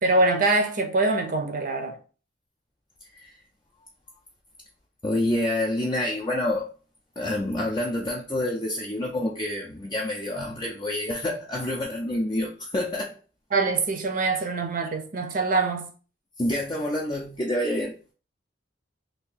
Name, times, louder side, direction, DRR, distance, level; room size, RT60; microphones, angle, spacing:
voice 1, 0.0-2.0 13.5-15.9, right 3 dB, 45° right, 0.6 m, -24 dB
voice 2, 5.0-6.7 7.2-13.1 16.4-17.9, left 1 dB, 25° left, 0.5 m, -27 dB
2.8 x 2.6 x 3.7 m
head